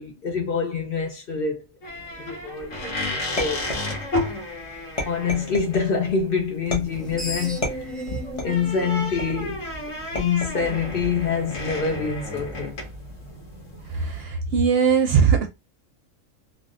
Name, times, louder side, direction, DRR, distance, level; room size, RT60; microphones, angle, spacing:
voice 1, 0.0-1.6 2.3-3.7 5.1-7.9 8.4-9.6 10.1-12.8, left 5 dB, 55° left, 0.6 m, -26 dB
sound 1, 1.8-14.2, left 1 dB, 75° left, 1.4 m, -33 dB
sound 2, 3.4-4.3 5.0-5.9 6.7-7.1 7.6-8.7 9.2-9.6 10.1-10.8 11.6-12.0, left 1 dB, 30° left, 0.9 m, -32 dB
Screech, 6.9-10.1, equal, ahead, 0.5 m, -36 dB
voice 2, 13.9-15.5, right 6 dB, 60° right, 0.7 m, -20 dB
3.4 x 2.4 x 2.4 m
omnidirectional pair, 1.4 m